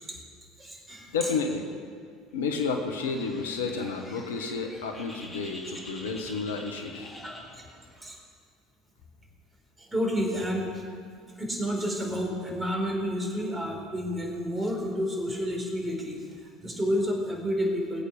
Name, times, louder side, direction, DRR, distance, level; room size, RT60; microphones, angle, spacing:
voice 1, 0.6-1.3 7.2-7.6 7.9-8.2 9.8-10.8 11.4-16.2 16.6-18.0, equal, 20° right, 0 dB, 4.2 m, -30 dB
voice 2, 1.1-1.7 2.3-7.1, left 4 dB, 75° left, 4 dB, 1.2 m, -31 dB
Bird, 2.9-7.9, left 1 dB, 20° left, 4.0 m, -46 dB
20.0 x 8.5 x 6.3 m, 2.1 s
figure-of-eight pair, 65°, 0 cm